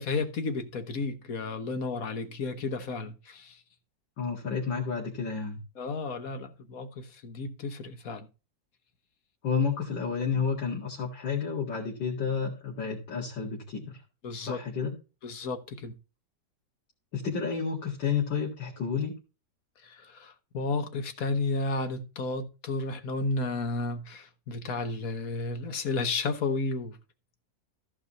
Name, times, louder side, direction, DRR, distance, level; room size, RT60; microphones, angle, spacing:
voice 1, 0.0-3.6 5.8-8.3 14.2-14.6 15.2-15.9 19.8-27.0, left 3 dB, 55° left, 1.4 m, -32 dB
voice 2, 4.2-5.6 9.4-14.0 14.4-14.9 17.1-19.1, left 6 dB, 80° left, 2.7 m, -30 dB
14.5 x 4.9 x 4.1 m
omnidirectional pair, 2.0 m